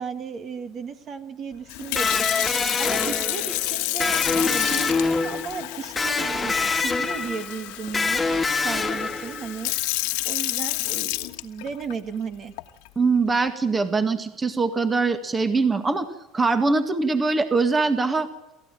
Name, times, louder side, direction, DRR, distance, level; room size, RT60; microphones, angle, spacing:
voice 1, 0.0-2.2 2.8-8.2 8.6-9.7 10.2-12.5, right 6 dB, 40° right, 10 dB, 2.1 m, -34 dB
Sink (filling or washing) / Fill (with liquid), 1.7-11.9 12.6-12.9, left 22 dB, 80° left, 1.5 m, -30 dB
Electric guitar, 2.0-9.7, left 4 dB, 15° left, 2.2 m, -25 dB
voice 2, 13.0-16.1 16.3-18.3, right 4 dB, 20° right, 9 dB, 1.9 m, -22 dB
28.0 x 15.0 x 9.2 m, 0.93 s
supercardioid pair, 125°, 0 cm